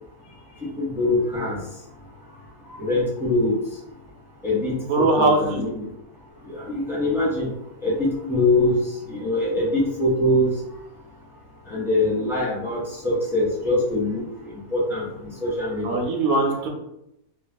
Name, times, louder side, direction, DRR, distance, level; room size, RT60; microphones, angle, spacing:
voice 1, 0.8-1.6 2.7-3.6 4.4-5.9 6.5-7.5 7.8-10.6 11.7-16.0, left 1 dB, 5° right, -7 dB, 0.4 m, -23 dB
voice 2, 4.9-5.6 15.8-16.7, right 2 dB, 80° right, 2 dB, 1.1 m, -21 dB
3.1 x 2.2 x 2.5 m, 0.84 s
omnidirectional pair, 1.6 m